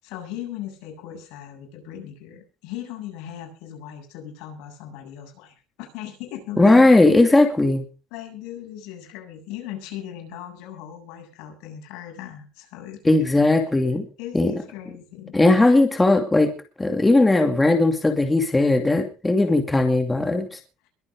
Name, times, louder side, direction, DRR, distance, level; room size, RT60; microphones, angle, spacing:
voice 1, 0.0-6.9 8.1-13.3 14.2-15.4, left 11 dB, 85° left, 3 dB, 7.6 m, -38 dB
voice 2, 6.6-7.8 13.0-14.0 14.3-14.5 15.3-16.5 16.8-20.6, left 2 dB, 10° left, 5 dB, 2.6 m, -18 dB
22.5 x 8.6 x 5.2 m, 0.35 s
cardioid pair, 130°, 0 cm